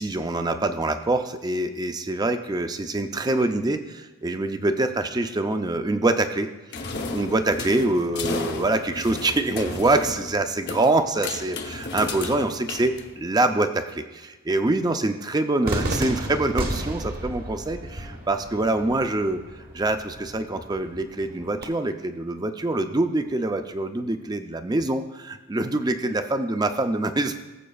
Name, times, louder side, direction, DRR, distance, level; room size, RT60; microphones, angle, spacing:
voice 1, 0.0-6.5 7.1-27.4, right 2 dB, 20° right, 8 dB, 0.5 m, -25 dB
metal-free-long, 6.7-13.5, left 3 dB, 50° left, 0.8 m, -34 dB
Cheering / Fireworks, 15.6-21.6, right 1 dB, 45° right, 1.1 m, -33 dB
18.5 x 7.5 x 2.3 m, 1.2 s
head